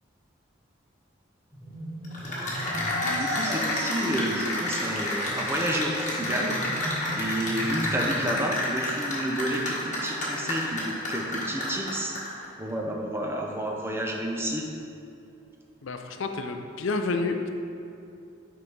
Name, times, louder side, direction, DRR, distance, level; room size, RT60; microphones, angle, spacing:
sound 1, 1.5-8.4, equal, 20° left, 1.4 m, -39 dB
Cheering / Applause, 2.0-12.4, left 1 dB, 35° left, 1.3 m, -30 dB
sound 2, 3.1-9.5, right 2 dB, 50° right, 1.2 m, -47 dB
voice 1, 3.2-6.6 7.1-14.7, right 1 dB, 10° right, 0 dB, 0.5 m, -30 dB
voice 2, 15.8-17.5, left 3 dB, 75° left, 6 dB, 0.5 m, -29 dB
5.7 x 4.7 x 5.3 m, 2.7 s
head